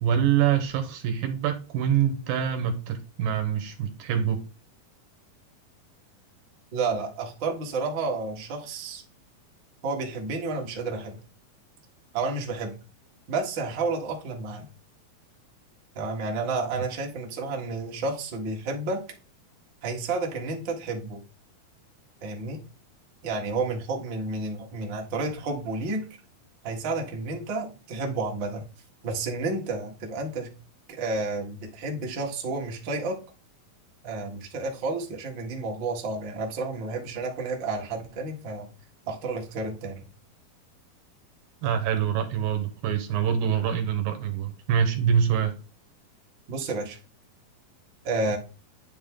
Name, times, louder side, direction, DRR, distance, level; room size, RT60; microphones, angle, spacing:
voice 1, 0.0-4.4 41.6-45.6, right 8 dB, 75° right, 2.7 m, -25 dB
voice 2, 6.7-9.0 9.8-11.2 12.1-12.7 13.3-14.7 15.9-19.0 19.8-21.2 22.2-22.6 23.2-26.0 26.6-28.7 29.0-30.5 31.0-33.2 34.0-38.7 39.1-40.0 46.5-47.0 48.0-48.4, right 3 dB, 45° right, 1.5 m, -31 dB
9.5 x 3.6 x 3.7 m
omnidirectional pair, 4.3 m